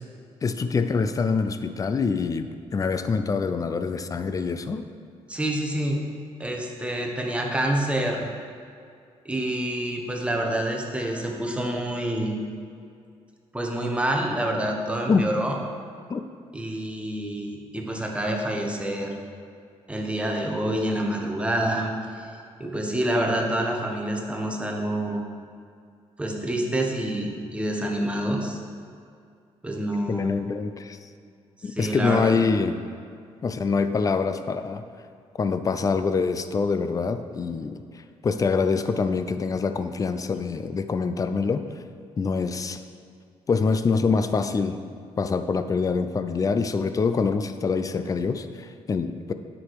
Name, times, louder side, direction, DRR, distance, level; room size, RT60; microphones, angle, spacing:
voice 1, 0.4-4.8 15.1-15.2 16.1-16.2 30.1-31.0 31.6-32.8 33.4-34.8 35.4-37.8 38.2-41.6 42.2-42.8 43.5-44.8 45.2-49.3, left 4 dB, 30° left, 10 dB, 0.5 m, -25 dB
voice 2, 5.3-6.0 6.4-8.3 9.2-12.3 13.5-15.6 16.5-19.1 19.9-22.3 22.6-25.2 26.2-28.6 29.6-30.3 31.6-32.4, right 1 dB, 10° right, 1 dB, 1.2 m, -27 dB
9.4 x 6.2 x 4.8 m, 2.3 s
cardioid pair, 100°, 11 cm